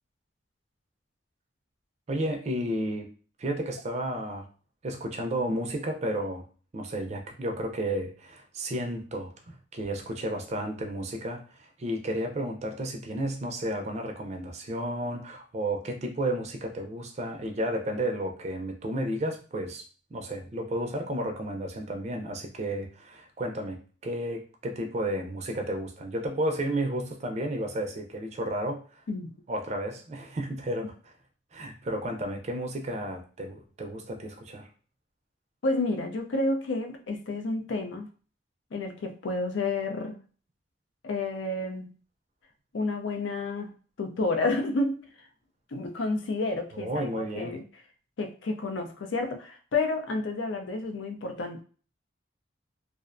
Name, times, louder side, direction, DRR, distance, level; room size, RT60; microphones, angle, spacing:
voice 1, 2.1-3.1 3.4-4.5 4.8-6.4 6.7-19.8 20.1-29.0 29.5-30.9 31.5-34.7 46.7-47.6, right 1 dB, 35° right, 4 dB, 0.4 m, -32 dB
voice 2, 35.6-38.1 38.7-40.2 41.0-41.9 42.7-43.7 44.0-45.1 45.7-47.6 48.2-51.6, left 2 dB, 85° left, 5 dB, 0.5 m, -30 dB
2.4 x 2.1 x 2.4 m, 0.39 s
head